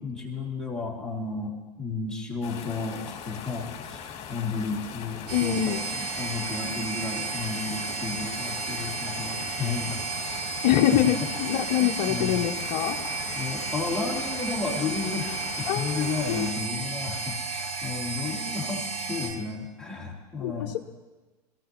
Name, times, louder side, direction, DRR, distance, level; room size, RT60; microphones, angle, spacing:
voice 1, 0.0-10.0 11.0-11.3 11.5-12.4 13.4-20.8, left 4 dB, 5° left, -3 dB, 2.4 m, -33 dB
sound 1, 2.4-16.5, left 8 dB, 35° left, 2.4 m, -40 dB
voice 2, 5.3-5.8 10.6-13.0 15.7-16.5 20.4-20.8, left 11 dB, 55° left, 2 dB, 0.8 m, -25 dB
sound 2, 5.3-19.3, right 4 dB, 75° right, 3.0 m, -33 dB
21.5 x 15.5 x 3.0 m, 1.2 s
hypercardioid pair, 100°, 21 cm